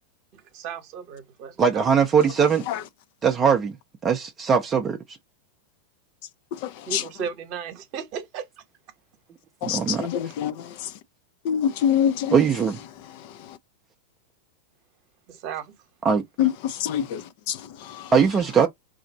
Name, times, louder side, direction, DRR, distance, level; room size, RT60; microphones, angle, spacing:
voice 1, 0.3-1.8 6.9-8.6 15.3-15.7, right 7 dB, 40° right, 1.0 m, -35 dB
voice 2, 1.6-2.6 3.2-3.8 4.0-5.2 9.6-10.1 12.3-12.8 16.0-16.2 18.1-18.7, right 6 dB, 25° right, 0.5 m, -20 dB
voice 3, 6.5-7.0 9.6-10.9 11.4-12.4 13.2-13.6 16.4-18.1, left 9 dB, 45° left, 0.4 m, -26 dB
2.7 x 2.4 x 3.9 m
figure-of-eight pair, 90°, 0 cm